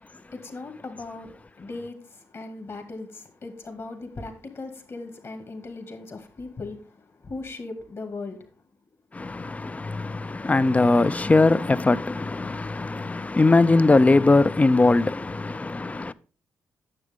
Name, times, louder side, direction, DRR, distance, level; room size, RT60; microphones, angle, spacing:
voice 1, 0.0-8.6, left 3 dB, 50° left, 2.4 m, -38 dB
voice 2, 9.1-16.1, left 3 dB, 25° left, 0.5 m, -20 dB
9.6 x 7.1 x 3.7 m
supercardioid pair, 50°, 6 cm